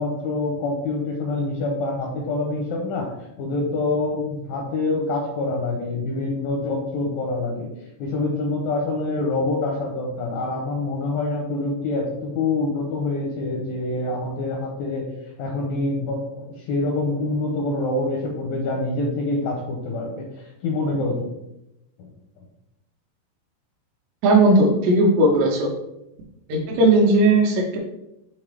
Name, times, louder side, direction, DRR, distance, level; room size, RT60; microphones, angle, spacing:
voice 1, 0.0-7.7 8.0-15.0 15.4-21.2 22.0-22.1, left 2 dB, 85° left, 0 dB, 2.0 m, -26 dB
voice 2, 24.2-25.7 26.5-27.8, right 2 dB, 80° right, 0 dB, 2.8 m, -17 dB
7.6 x 3.8 x 3.3 m, 0.88 s
omnidirectional pair, 5.1 m